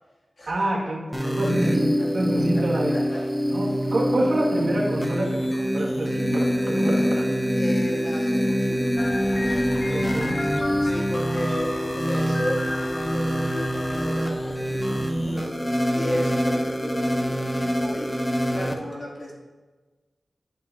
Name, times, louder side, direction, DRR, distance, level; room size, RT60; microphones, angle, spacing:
voice 1, 0.5-1.0 1.4-1.9 2.1-3.2 3.5-7.5 9.7-10.4, right 1 dB, 75° right, -4 dB, 1.7 m, -27 dB
sound 1, 1.1-18.7, equal, 10° left, 0.7 m, -25 dB
voice 2, 1.2-1.7 2.0-2.1 2.5-3.2 7.5-9.0 9.4-10.5 10.8-18.2 18.5-19.3, left 1 dB, 65° left, -4 dB, 2.1 m, -34 dB
sound 2, 9.0-15.5, left 2 dB, 35° left, 0.3 m, -34 dB
10.5 x 5.7 x 2.6 m, 1.3 s
cardioid pair, 55°, 0 cm